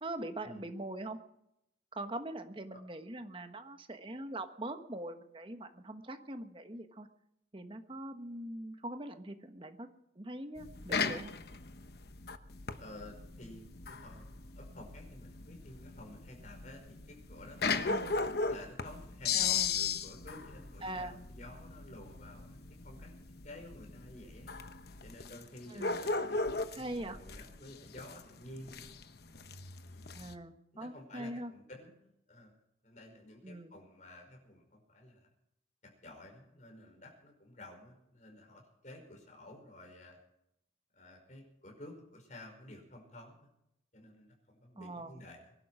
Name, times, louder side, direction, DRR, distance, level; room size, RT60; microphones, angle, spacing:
voice 1, 0.0-1.2 1.9-7.1 7.5-9.9 10.1-11.3 17.9-18.1 19.3-19.7 20.8-21.2 25.7-26.0 26.7-27.2 30.1-31.5 33.4-33.7 44.8-45.2, right 1 dB, 30° right, 7 dB, 1.4 m, -42 dB
sound 1, 10.6-30.3, left 5 dB, 60° left, 1.0 m, -37 dB
voice 2, 12.8-14.3 14.6-17.9 18.4-22.6 22.8-23.1 23.4-24.5 25.0-28.9 29.9-30.1 30.7-32.5 32.8-35.3 35.8-40.2 40.9-43.5 43.9-45.5, left 1 dB, 40° left, 2 dB, 5.3 m, -52 dB
23.0 x 11.5 x 5.0 m, 0.79 s
head